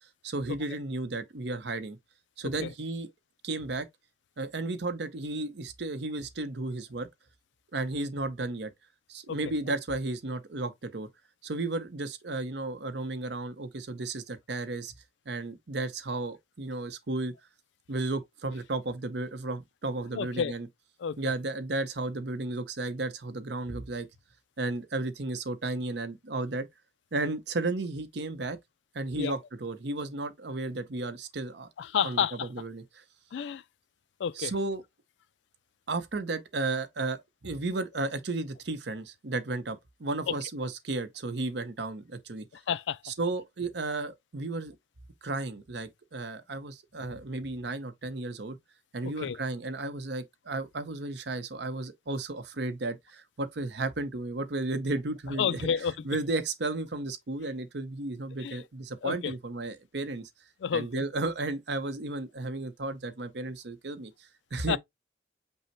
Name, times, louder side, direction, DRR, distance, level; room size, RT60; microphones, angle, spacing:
voice 1, 0.2-2.0 2.4-3.1 3.4-3.9 4.4-7.1 7.7-8.7 9.1-11.1 11.4-14.9 15.3-17.3 17.9-20.7 21.2-24.1 24.6-26.7 27.1-28.6 28.9-31.7 32.0-33.0 34.4-34.8 35.9-42.5 43.0-44.8 45.2-48.6 48.9-55.7 56.0-60.3 60.7-64.8, right 2 dB, 75° right, 0.8 m, -33 dB
voice 2, 20.1-20.5 21.0-21.2 29.2-29.3 31.8-32.5 33.3-33.6 34.2-34.5 40.3-40.4 42.5-43.0 49.2-49.4 55.4-55.9 58.4-58.6 59.0-59.3 60.6-61.0 64.7-64.8, left 7 dB, 90° left, 0.4 m, -30 dB
5.5 x 2.1 x 4.4 m
head